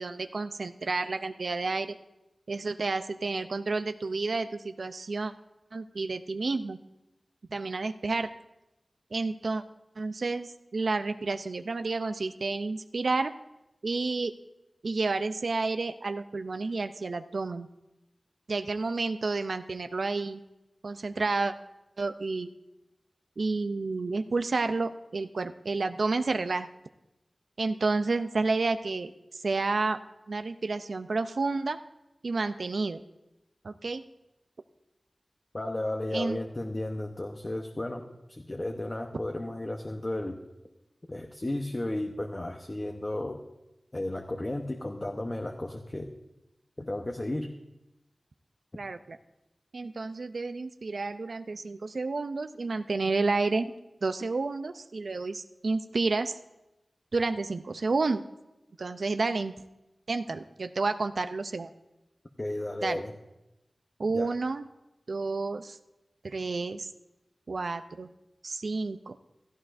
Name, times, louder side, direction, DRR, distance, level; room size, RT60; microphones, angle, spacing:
voice 1, 0.0-2.0 2.5-5.3 5.7-6.8 7.5-8.3 9.1-9.6 10.0-13.3 13.8-14.3 14.8-17.7 18.5-20.4 20.8-21.5 22.0-22.5 23.4-26.7 27.6-30.0 30.3-31.8 32.2-33.0 33.6-34.0 36.1-36.4 48.8-49.2 49.7-53.7 54.0-56.4 57.1-58.2 58.8-59.5 60.1-61.7 62.8-63.0 64.0-64.6 65.1-65.8 66.2-66.9 67.5-68.1 68.4-69.2, right 3 dB, 75° right, 9 dB, 0.5 m, -30 dB
voice 2, 35.5-40.4 41.1-43.4 43.9-46.1 46.8-47.5 62.4-63.1 64.1-64.3, left 1 dB, 35° left, 3 dB, 0.9 m, -34 dB
16.0 x 13.5 x 2.6 m, 0.96 s
wide cardioid pair, 50°, 0 cm